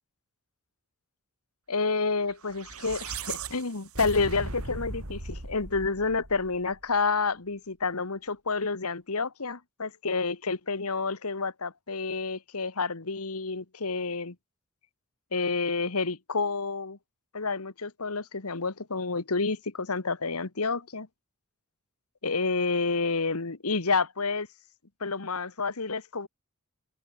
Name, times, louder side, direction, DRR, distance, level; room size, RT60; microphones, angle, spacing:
voice 1, 1.7-14.3 15.3-17.0 17.3-21.1 22.2-24.5 25.0-26.3, left 4 dB, 75° left, 1.6 m, -29 dB
sound 1, 2.4-6.8, right 3 dB, 75° right, 3.6 m, -38 dB
head